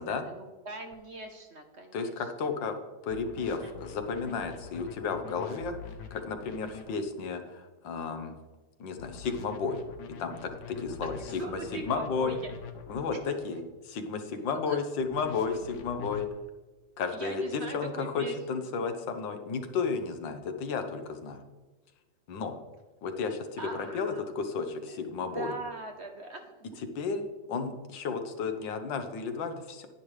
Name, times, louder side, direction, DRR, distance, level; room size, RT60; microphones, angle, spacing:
voice 1, 0.0-2.1 3.4-3.7 11.0-11.1 11.4-12.5 14.5-14.8 17.1-18.6 23.6-24.2 24.9-26.8, right 3 dB, 50° right, 4 dB, 0.9 m, -41 dB
sound 1, 0.9-1.0 3.1-7.0 9.0-13.0 15.0-16.3, left 6 dB, 70° left, 1.4 m, -44 dB
voice 2, 1.9-8.4 8.8-9.8 10.2-12.4 12.9-16.3 17.0-21.4 22.3-22.6 23.0-25.5 26.8-27.2 27.5-29.9, left 5 dB, 90° left, 7 dB, 1.7 m, -33 dB
10.5 x 10.0 x 3.2 m, 1.2 s
omnidirectional pair, 1.9 m